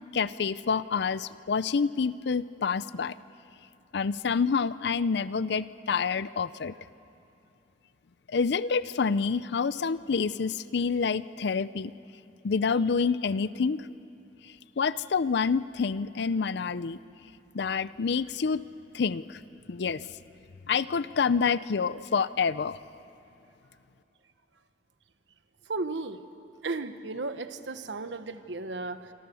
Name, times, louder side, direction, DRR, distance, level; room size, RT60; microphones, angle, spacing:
voice 1, 0.1-3.1 3.9-6.7 8.3-11.9 12.4-13.8 14.8-17.0 17.5-18.6 18.9-19.4 19.7-20.1 20.7-22.8, left 5 dB, 65° left, 17 dB, 0.5 m, -27 dB
voice 2, 25.7-26.2 26.6-29.1, right 3 dB, 80° right, 10 dB, 1.2 m, -34 dB
26.5 x 26.0 x 7.0 m, 2.9 s
head